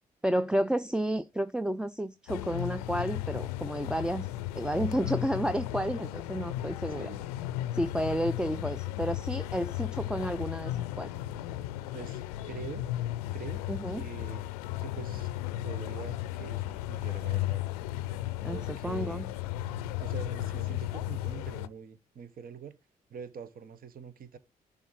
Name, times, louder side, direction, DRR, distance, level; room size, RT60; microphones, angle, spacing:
voice 1, 0.2-7.1 7.7-11.1 13.7-14.0 18.4-19.3, right 1 dB, 5° right, 0.5 m, -31 dB
sound 1, 2.3-21.7, left 14 dB, 80° left, 0.5 m, -35 dB
voice 2, 6.9-7.3 11.9-12.2 12.5-12.9 13.3-13.6 13.9-14.5 14.8-15.3 15.6-17.6 18.5-19.3 20.0-22.8 23.1-24.4, right 6 dB, 50° right, 1.0 m, -44 dB
11.0 x 3.7 x 6.2 m
hypercardioid pair, 40°, 19 cm